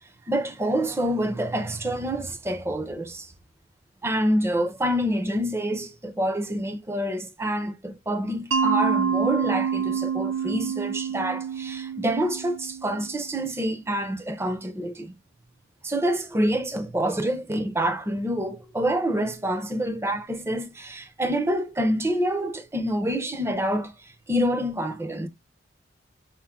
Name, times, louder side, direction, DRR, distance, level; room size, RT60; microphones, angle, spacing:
voice 1, 0.3-3.3 4.0-15.1 15.8-25.3, equal, 15° right, 0.6 m, -27 dB
Mallet percussion, 8.5-13.3, right 6 dB, 90° right, 0.4 m, -27 dB
5.7 x 2.1 x 3.5 m
head